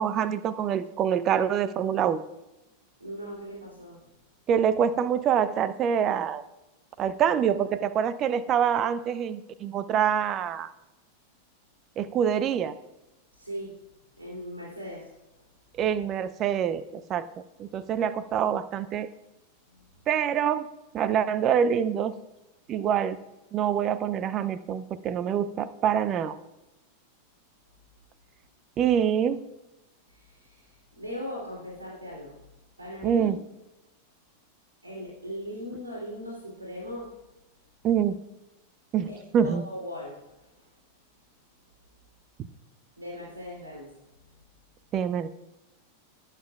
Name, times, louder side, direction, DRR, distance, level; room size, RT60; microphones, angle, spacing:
voice 1, 0.0-2.2 4.5-6.4 7.0-10.7 12.0-12.8 15.7-17.3 17.6-19.1 20.1-20.7 20.9-22.1 22.7-23.2 23.5-26.4 28.8-29.4 33.0-33.4 37.8-38.2 38.9-39.6 44.9-45.3, right 8 dB, 30° right, 15 dB, 0.6 m, -25 dB
voice 2, 3.0-4.1 13.3-13.7 14.2-15.1 19.7-19.8 30.1-30.7 31.0-32.3 32.8-33.3 34.8-37.1 39.1-40.2 43.0-43.9 44.3-44.4, equal, 80° right, -4 dB, 3.0 m, -39 dB
19.5 x 9.1 x 2.4 m, 0.99 s
figure-of-eight pair, 90°, 0 cm